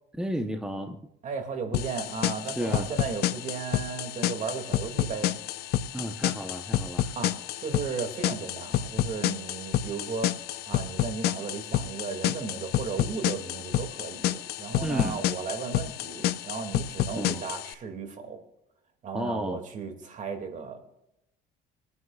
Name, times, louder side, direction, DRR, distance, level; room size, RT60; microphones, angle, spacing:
voice 1, 0.2-1.0 2.4-2.9 5.9-7.1 14.8-15.2 17.1-17.4 19.1-19.6, equal, 5° right, 5 dB, 0.9 m, -32 dB
voice 2, 1.2-5.4 7.2-10.4 10.7-18.4 19.0-20.8, right 5 dB, 45° right, 5 dB, 2.4 m, -35 dB
sound 1, 1.7-17.7, left 12 dB, 65° left, 0.6 m, -30 dB
27.0 x 9.6 x 2.4 m, 0.87 s
cardioid pair, 120°, 17 cm